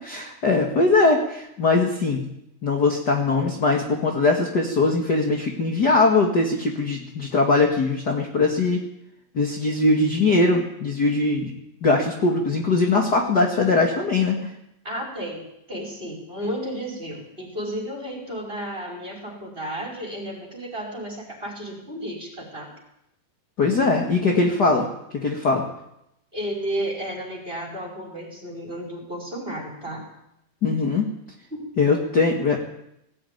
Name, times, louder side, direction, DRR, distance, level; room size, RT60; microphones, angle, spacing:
voice 1, 0.0-2.2 2.6-8.8 9.3-11.5 11.8-14.4 23.6-24.9 25.1-25.6 30.6-31.1 31.8-32.6, left 3 dB, 40° left, 1 dB, 1.5 m, -21 dB
voice 2, 14.8-22.7 26.3-30.1 31.5-31.6, equal, 10° right, 0 dB, 5.3 m, -33 dB
19.0 x 15.0 x 9.3 m, 0.81 s
omnidirectional pair, 4.9 m